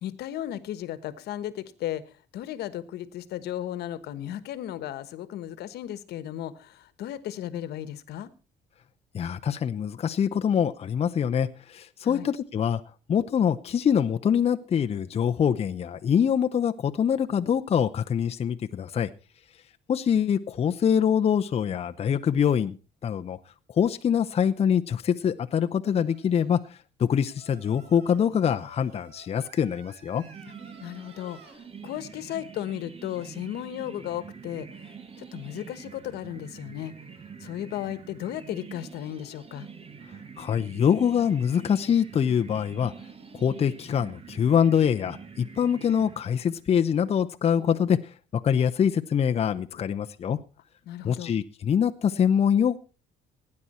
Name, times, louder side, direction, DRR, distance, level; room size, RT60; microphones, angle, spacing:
voice 1, 0.0-2.0 2.3-8.3 12.0-12.3 30.8-31.4 31.8-36.9 37.4-39.7 50.9-51.3, left 12 dB, 75° left, 15 dB, 1.3 m, -35 dB
voice 2, 9.1-12.8 13.1-19.1 19.9-22.8 23.0-23.4 23.7-26.6 27.0-30.2 40.4-42.9 43.3-48.0 48.3-50.4 51.0-52.8, left 8 dB, 35° left, 7 dB, 0.7 m, -24 dB
Singing, 25.8-26.7 27.3-31.5, right 6 dB, 75° right, 2.7 m, -53 dB
sound 1, 30.1-46.7, right 6 dB, 35° right, 1.8 m, -45 dB
17.5 x 9.7 x 4.3 m, 0.34 s
cardioid pair, 110°, 17 cm